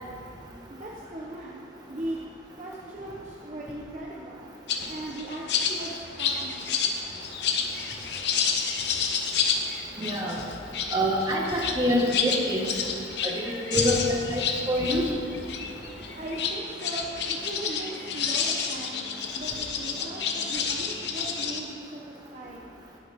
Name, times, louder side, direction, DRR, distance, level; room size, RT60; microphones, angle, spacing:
voice 1, 0.7-1.6 1.9-2.2 2.6-4.5 4.9-7.1 16.1-22.7, right 1 dB, 40° right, -3 dB, 1.0 m, -39 dB
sound 1, 4.7-21.6, left 6 dB, 65° left, 1.0 m, -30 dB
voice 2, 10.0-10.4 10.9-12.7 13.2-13.3 13.7-14.0 14.3-15.0, equal, 20° right, -2 dB, 1.7 m, -25 dB
16.5 x 11.5 x 3.7 m, 2.4 s
head